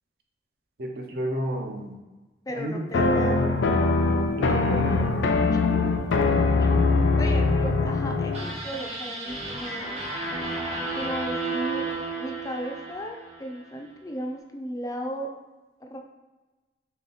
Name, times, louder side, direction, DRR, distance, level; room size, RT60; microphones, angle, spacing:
voice 1, 0.8-2.0 2.5-2.9 4.4-5.1, right 1 dB, 55° right, 2 dB, 0.6 m, -31 dB
voice 2, 2.5-3.4 5.5-5.6 6.6-6.7 7.1-10.1 10.9-11.9 12.2-15.3 15.8-16.0, equal, 20° left, 2 dB, 0.4 m, -35 dB
sound 1, 2.9-8.5, left 3 dB, 85° left, 0.4 m, -22 dB
sound 2, 8.3-13.6, right 3 dB, 35° right, 0.9 m, -32 dB
3.3 x 2.8 x 3.9 m, 1.2 s
head